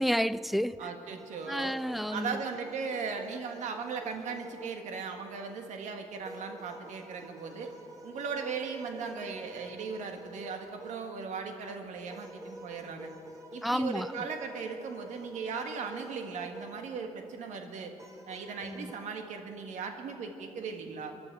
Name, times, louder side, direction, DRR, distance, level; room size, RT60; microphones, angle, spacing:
voice 1, 0.0-0.8 1.5-2.4 13.6-14.1 18.6-18.9, equal, ahead, 0.5 m, -30 dB
voice 2, 0.8-1.8 2.1-7.7 8.0-13.1 13.5-17.9 18.3-21.2, right 5 dB, 80° right, 1.8 m, -38 dB
sound 1, 1.2-5.4 6.2-11.2 12.1-16.9 18.0-19.0, equal, 25° right, 2.9 m, -48 dB
23.5 x 11.5 x 4.8 m
cardioid pair, 65°, 12 cm